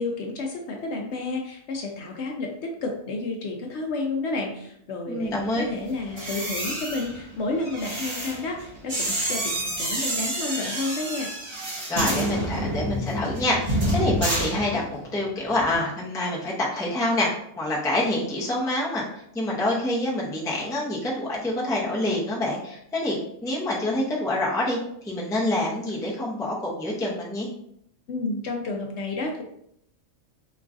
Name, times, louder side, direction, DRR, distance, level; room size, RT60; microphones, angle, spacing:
voice 1, 0.0-11.3 28.1-29.4, left 3 dB, 70° left, 1 dB, 0.8 m, -31 dB
voice 2, 5.1-5.6 11.9-17.3 17.6-19.1 19.3-24.8 25.0-27.5, left 1 dB, 5° left, -5 dB, 0.4 m, -26 dB
sound 1, 6.0-15.1 15.4-15.7, right 1 dB, 40° right, 1.7 m, -29 dB
3.5 x 3.0 x 2.5 m, 0.72 s
omnidirectional pair, 1.3 m